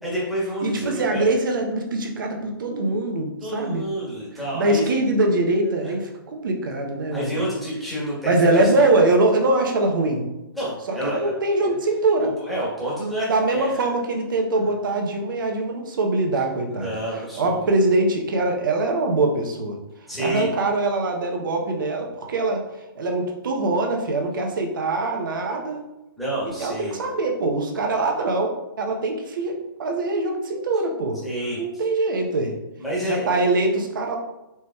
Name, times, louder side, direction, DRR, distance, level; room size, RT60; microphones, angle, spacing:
voice 1, 0.0-1.3 3.4-5.0 5.6-5.9 7.1-8.9 10.5-11.3 11.6-11.8 12.2-13.9 14.5-14.6 16.7-17.6 20.1-20.5 26.2-27.0 31.2-31.6 32.8-33.5, right 1 dB, ahead, -9 dB, 1.3 m, -29 dB
voice 2, 0.6-3.8 4.5-7.3 8.3-10.2 11.0-12.3 13.3-16.9 17.4-19.8 20.2-22.6 23.0-25.8 26.6-31.2 31.6-32.5 33.0-34.2, right 2 dB, 60° right, 2 dB, 0.8 m, -23 dB
4.4 x 3.0 x 2.2 m, 0.97 s
hypercardioid pair, 135°, 12 cm